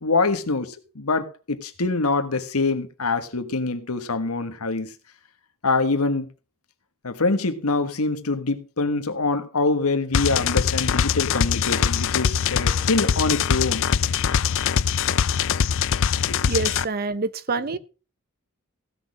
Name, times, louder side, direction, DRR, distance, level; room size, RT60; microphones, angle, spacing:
voice 1, 0.0-4.9 5.6-6.3 7.0-13.8 16.3-16.5, left 3 dB, 85° left, 1.5 m, -24 dB
sound 1, 10.1-16.8, left 7 dB, 65° left, 0.5 m, -22 dB
voice 2, 16.5-17.8, right 3 dB, 45° right, 0.7 m, -26 dB
15.5 x 6.5 x 5.3 m
head